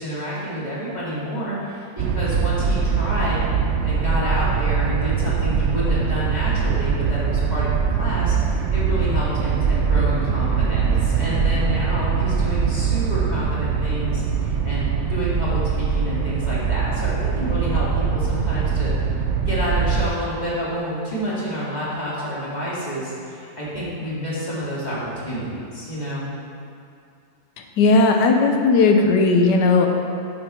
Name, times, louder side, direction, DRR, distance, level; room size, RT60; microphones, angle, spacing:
voice 1, 0.0-3.4 3.8-18.9 19.5-26.3, equal, 25° left, -8 dB, 2.4 m, -29 dB
sound 1, 2.0-20.1, right 6 dB, 65° right, 0.7 m, -22 dB
voice 2, 27.8-29.9, left 3 dB, 90° left, 3 dB, 1.5 m, -16 dB
8.7 x 8.3 x 4.3 m, 2.5 s
omnidirectional pair, 1.8 m